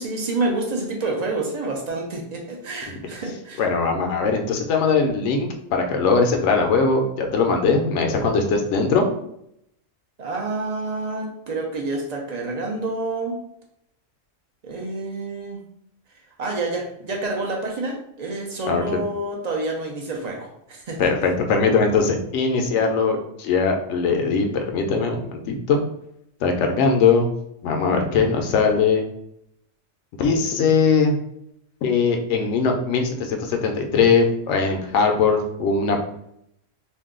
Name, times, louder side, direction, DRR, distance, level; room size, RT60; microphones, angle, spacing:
voice 1, 0.0-3.7 10.2-13.4 14.6-15.6 16.4-21.3, right 2 dB, 50° right, 0 dB, 0.5 m, -28 dB
voice 2, 3.6-9.1 18.7-18.8 21.0-25.8 26.4-27.3 27.6-29.0 30.1-31.1 31.8-36.0, left 4 dB, 70° left, 4 dB, 0.9 m, -20 dB
2.6 x 2.2 x 3.6 m, 0.74 s
omnidirectional pair, 1.3 m